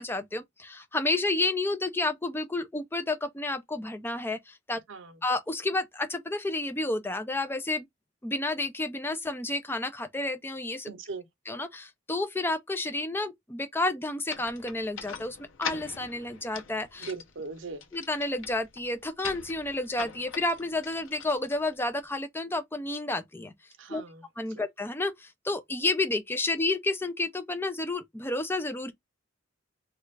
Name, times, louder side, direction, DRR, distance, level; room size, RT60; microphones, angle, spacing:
voice 1, 0.0-4.8 5.2-7.9 8.2-10.9 11.5-17.1 17.9-23.5 23.9-24.0 24.4-28.9, left 2 dB, 10° left, 0.4 m, -30 dB
voice 2, 4.9-5.2 10.9-11.3 17.0-17.8 23.8-24.2, right 4 dB, 70° right, 0.7 m, -39 dB
sound 1, 14.3-22.1, left 6 dB, 80° left, 0.7 m, -42 dB
3.2 x 2.4 x 3.2 m
head